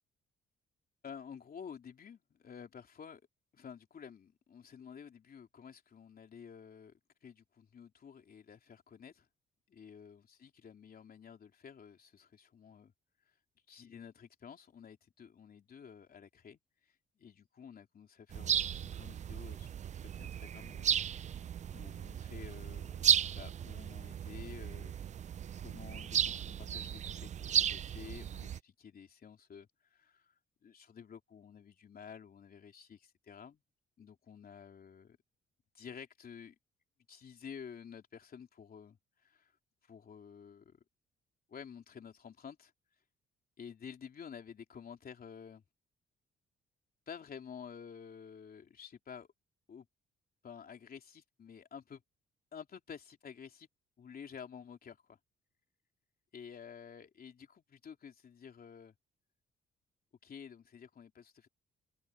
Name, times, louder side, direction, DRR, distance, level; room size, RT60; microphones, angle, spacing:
voice 1, 1.0-3.2 3.5-9.3 9.7-12.9 13.7-23.1 23.3-24.9 25.6-33.6 34.0-35.2 35.7-36.6 37.1-39.6 39.8-40.8 41.5-42.7 43.6-45.6 47.1-49.3 49.7-49.9 50.4-52.0 52.5-53.7 54.0-55.2 56.3-58.9 60.2-61.5, left 7 dB, 50° left, 3.4 m, -51 dB
sound 1, 18.3-28.6, right 9 dB, 35° right, 0.4 m, -35 dB
open air
cardioid pair, 90°, 20 cm